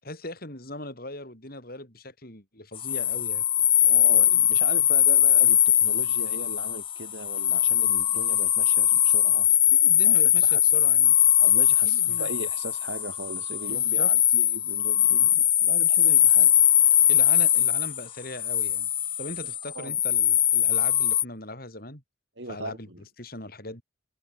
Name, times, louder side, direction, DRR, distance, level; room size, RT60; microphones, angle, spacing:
voice 1, 0.0-3.4 9.7-11.2 11.8-12.3 13.7-14.1 17.1-18.9 19.2-22.0 22.5-22.9 23.2-23.8, left 1 dB, 50° left, 7.1 m, -39 dB
sound 1, 2.8-21.2, left 11 dB, 25° left, 0.7 m, -21 dB
voice 2, 3.8-9.5 10.0-10.2 10.4-10.7 11.4-16.5 16.8-17.0 19.7-20.0 22.4-23.0, right 2 dB, 65° right, 4.6 m, -39 dB
head